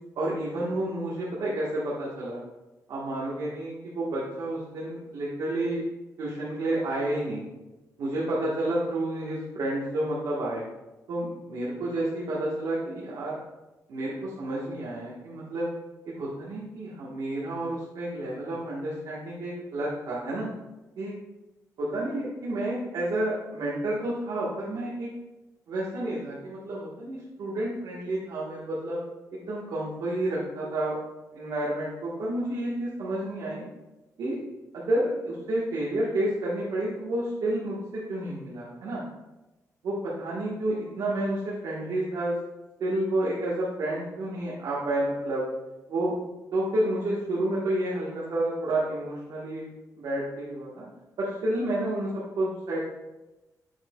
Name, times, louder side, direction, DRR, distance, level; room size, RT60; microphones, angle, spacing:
voice 1, 0.1-2.4 2.9-5.8 6.2-7.4 8.0-10.6 11.1-13.4 13.9-15.7 16.2-20.5 21.0-21.1 21.8-25.1 25.7-29.0 29.3-31.0 31.3-33.6 34.2-34.4 34.7-37.7 38.1-39.0 39.8-42.4 42.8-45.5 45.9-46.1 46.5-49.6 50.0-50.8 51.2-52.1 52.4-52.8, right 1 dB, 85° right, -6 dB, 1.4 m, -30 dB
7.2 x 6.4 x 2.3 m, 1.0 s
wide cardioid pair, 180°, 7 cm